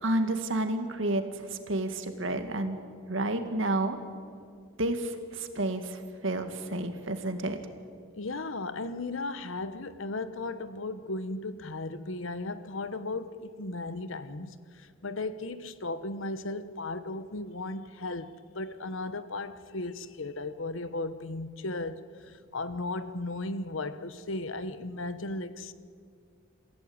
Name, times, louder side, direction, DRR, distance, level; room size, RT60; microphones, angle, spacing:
voice 1, 0.0-2.8 3.1-4.0 4.8-7.6, right 1 dB, 65° right, 2.0 m, -30 dB
voice 2, 8.1-25.7, left 2 dB, 70° left, 1.1 m, -36 dB
28.0 x 16.0 x 8.8 m
head